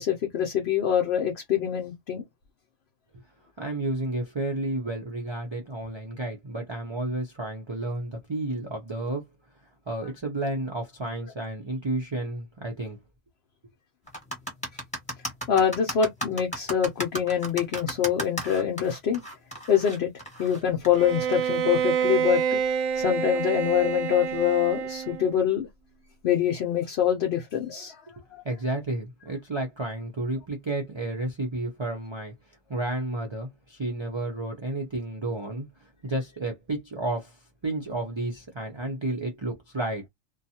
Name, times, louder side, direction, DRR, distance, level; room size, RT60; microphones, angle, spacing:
voice 1, 0.0-2.2 15.5-19.2 19.7-20.1 20.4-22.6 22.9-25.7 26.2-28.0 28.3-28.4, left 9 dB, 60° left, 0.8 m, -25 dB
voice 2, 3.6-9.2 9.9-13.0 28.4-32.3 32.7-35.7 36.0-37.4 37.6-40.1, right 2 dB, 35° right, 0.5 m, -31 dB
sound 1, 14.1-21.6, right 1 dB, 5° left, 1.2 m, -35 dB
Bowed string instrument, 20.9-25.4, right 8 dB, 85° right, 1.0 m, -27 dB
2.5 x 2.3 x 2.7 m
omnidirectional pair, 1.4 m